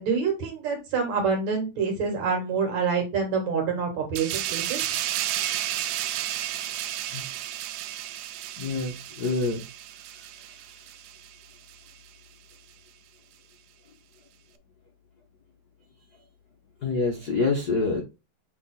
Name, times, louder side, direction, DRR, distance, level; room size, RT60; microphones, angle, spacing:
voice 1, 0.0-4.8, right 5 dB, 60° right, 3 dB, 3.2 m, -26 dB
sound 1, 4.1-11.3 11.7-11.9, right 12 dB, 85° right, 1.5 m, -32 dB
voice 2, 8.6-9.6 16.8-18.0, left 3 dB, 70° left, 1 dB, 0.9 m, -26 dB
7.1 x 4.0 x 3.8 m, 0.26 s
omnidirectional pair, 3.8 m